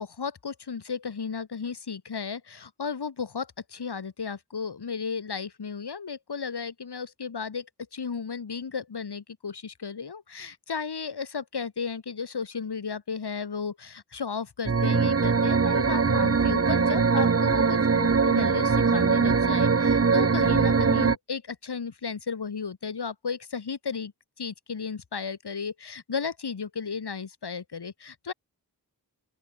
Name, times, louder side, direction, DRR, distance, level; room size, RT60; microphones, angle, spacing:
voice 1, 0.0-24.1 24.4-28.3, left 5 dB, 90° left, 2.7 m, -34 dB
sound 1, 14.7-21.2, right 5 dB, 35° right, 0.9 m, -22 dB
open air
wide cardioid pair, 65°, 38 cm